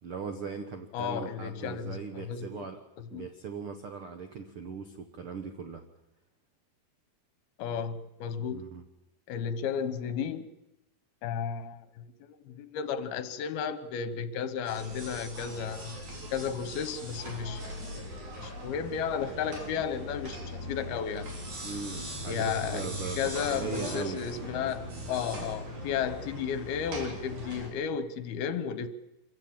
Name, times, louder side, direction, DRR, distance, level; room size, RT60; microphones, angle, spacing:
voice 1, 0.0-2.8 3.1-5.8 8.5-8.8 21.6-24.4, right 5 dB, 90° right, 1.2 m, -39 dB
voice 2, 0.9-2.0 2.3-2.7 3.1-3.3 7.6-8.6 9.3-10.5 11.2-16.0 16.3-18.0 18.4-21.3 22.3-22.9 23.2-28.9, left 7 dB, 75° left, 3.0 m, -33 dB
sound 1, 14.7-27.7, equal, 50° right, 5.3 m, -40 dB
26.0 x 15.0 x 8.8 m
omnidirectional pair, 4.5 m